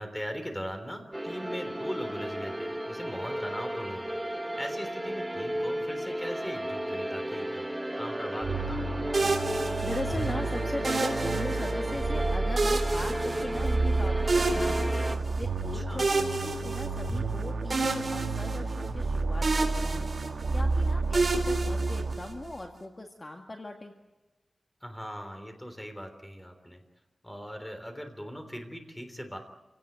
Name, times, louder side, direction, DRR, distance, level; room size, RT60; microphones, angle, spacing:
voice 1, 0.0-4.2 4.6-7.7 7.9-8.9 15.7-16.1 24.8-26.8 27.2-29.4, equal, 10° left, 6 dB, 3.5 m, -39 dB
sound 1, 1.1-15.2, right 1 dB, 10° right, 1.3 m, -34 dB
sound 2, 8.4-22.5, right 3 dB, 70° right, 1.8 m, -31 dB
sound 3, 9.1-10.3 10.8-12.0 12.6-13.9 14.3-15.5 16.0-17.3 17.7-19.1 19.4-20.6 21.1-22.5, right 3 dB, 40° right, 3.9 m, -30 dB
voice 2, 9.5-20.0 20.5-23.9, left 2 dB, 30° left, 3 dB, 2.0 m, -39 dB
27.5 x 17.5 x 9.2 m, 1.1 s
wide cardioid pair, 110°, 0 cm